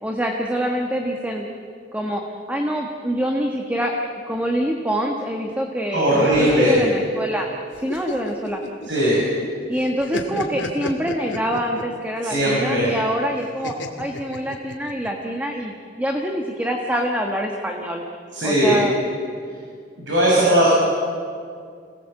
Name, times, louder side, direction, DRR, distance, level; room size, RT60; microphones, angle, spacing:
voice 1, 0.0-1.5 1.9-2.2 2.5-7.5 7.8-8.6 9.7-18.0 18.4-18.9, equal, 10° right, 1 dB, 1.5 m, -25 dB
voice 2, 5.9-6.8 8.9-9.2 12.2-12.9 18.3-18.8 20.0-20.7, right 1 dB, 80° right, -5 dB, 6.7 m, -18 dB
sound 1, 7.7-9.5 9.8-12.0 13.6-15.1, left 2 dB, 85° left, 2.2 m, -31 dB
26.5 x 18.5 x 7.7 m, 2.2 s
head